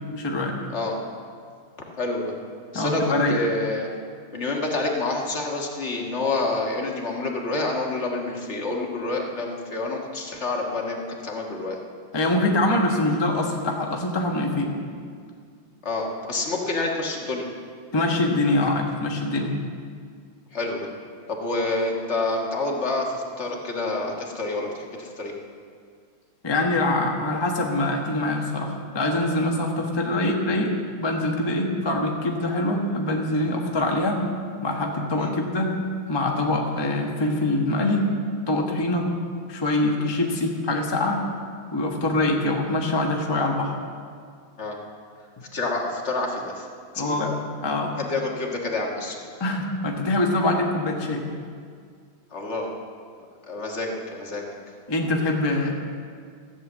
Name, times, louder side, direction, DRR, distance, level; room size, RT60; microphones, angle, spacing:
voice 1, 0.1-0.5 2.7-3.4 12.1-14.7 17.9-19.6 26.4-34.2 34.6-35.7 36.1-38.1 38.5-39.1 39.5-41.2 41.7-43.8 47.0-47.3 47.6-47.9 49.4-51.3 54.9-55.7, left 2 dB, 15° left, 0 dB, 0.9 m, -24 dB
voice 2, 2.0-2.3 2.7-3.0 3.3-3.9 4.3-11.8 15.8-17.4 20.5-20.9 21.3-25.3 35.1-35.3 44.6-44.8 45.5-46.7 46.9-47.4 48.0-49.2 52.3-52.7 53.5-54.4, left 2 dB, 35° left, -1 dB, 1.7 m, -28 dB
14.5 x 7.8 x 7.5 m, 2.1 s
omnidirectional pair, 2.4 m